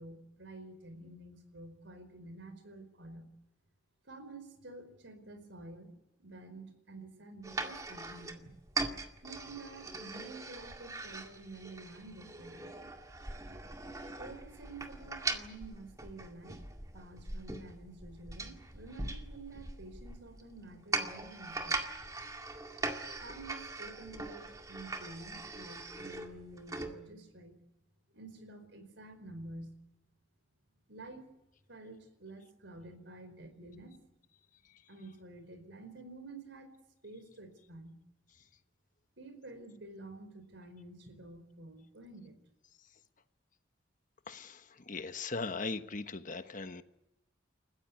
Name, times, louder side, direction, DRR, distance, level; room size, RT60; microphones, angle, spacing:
voice 1, 0.0-3.3 4.1-8.5 9.2-12.6 14.2-16.6 16.9-21.9 23.2-27.6 28.1-29.7 30.9-31.4 31.7-34.1 34.9-36.8 37.0-37.9 39.2-42.4, right 2 dB, 75° right, 10 dB, 4.8 m, -50 dB
sound 1, 7.4-26.9, right 3 dB, 20° right, 2.1 m, -41 dB
voice 2, 44.3-44.6 44.9-46.8, left 3 dB, 45° left, 9 dB, 1.2 m, -39 dB
29.5 x 15.5 x 9.5 m, 0.89 s
head